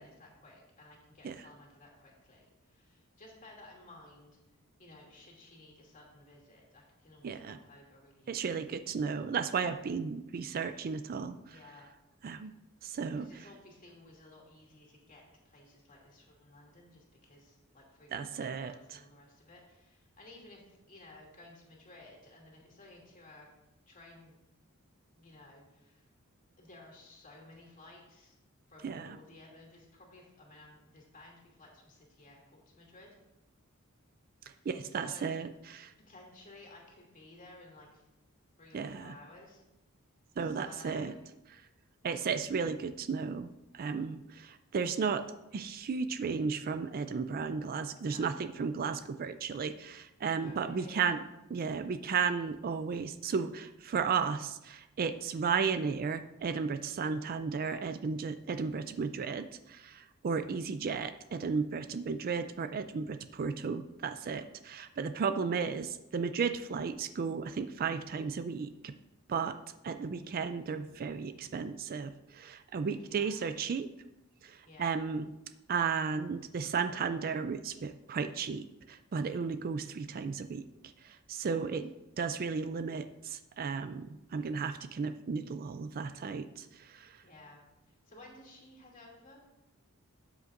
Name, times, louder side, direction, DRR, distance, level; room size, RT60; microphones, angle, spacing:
voice 1, 0.0-4.4 4.8-8.6 11.5-11.9 13.2-18.1 18.4-23.5 23.9-24.4 25.2-26.1 26.6-28.3 28.7-33.1 35.0-35.3 36.1-38.0 38.6-39.6 40.4-41.2 48.0-48.3 50.4-51.1 72.8-73.6 74.6-75.0 81.4-81.7 86.9-87.6 87.9-89.4, left 2 dB, 35° left, -2 dB, 2.5 m, -55 dB
voice 2, 7.2-7.6 8.3-11.6 12.2-12.5 12.8-13.4 18.1-19.0 28.8-29.2 34.7-35.9 38.7-39.1 40.4-41.2 42.0-45.3 45.5-51.2 51.5-68.9 69.3-69.6 69.8-73.9 74.4-75.3 75.7-80.7 81.0-81.9 82.2-87.2, right 5 dB, 40° right, 11 dB, 0.4 m, -34 dB
13.0 x 8.2 x 2.5 m, 0.95 s
head